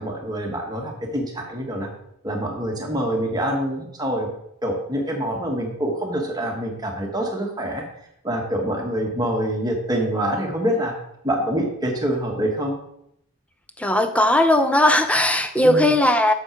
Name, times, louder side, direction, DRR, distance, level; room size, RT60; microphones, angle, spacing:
voice 1, 0.0-1.9 2.2-4.3 4.6-7.8 8.2-11.0 11.2-12.7 15.6-15.9, right 1 dB, 20° right, 0 dB, 1.4 m, -25 dB
voice 2, 13.8-16.3, left 1 dB, 5° left, 8 dB, 0.5 m, -18 dB
7.6 x 7.0 x 4.5 m, 0.75 s
head